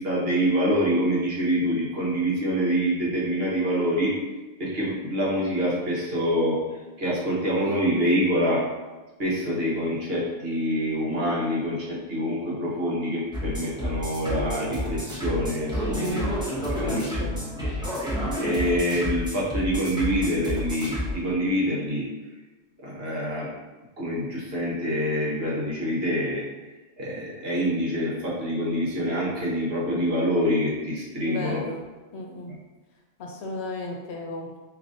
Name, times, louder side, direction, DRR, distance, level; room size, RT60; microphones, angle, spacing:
voice 1, 0.0-4.1 4.6-6.6 7.0-8.6 9.2-16.2 16.7-17.6 18.4-22.1 22.8-23.5 24.0-26.4 27.0-31.6, equal, 55° right, -5 dB, 1.3 m, -26 dB
sound 1, 13.3-21.1, equal, 5° right, 0.9 m, -30 dB
voice 2, 15.8-16.3 16.8-17.3 31.2-31.8 32.1-32.5 33.2-34.6, left 2 dB, 65° left, 0 dB, 1.0 m, -35 dB
4.9 x 2.9 x 2.6 m, 1.2 s
omnidirectional pair, 1.2 m